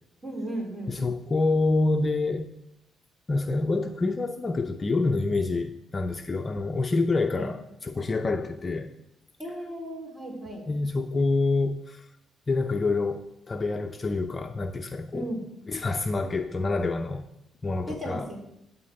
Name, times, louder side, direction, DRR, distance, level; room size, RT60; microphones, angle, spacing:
voice 1, 0.2-1.0 7.3-7.5 9.4-10.7 15.1-15.5 17.8-18.4, right 1 dB, 25° right, 0 dB, 3.8 m, -35 dB
voice 2, 0.9-2.5 3.3-7.6 7.9-8.9 10.7-12.1 12.5-15.3 15.7-17.3 17.6-18.3, left 3 dB, 30° left, 6 dB, 0.6 m, -27 dB
13.0 x 4.3 x 7.8 m, 0.85 s
cardioid pair, 90°, 0 cm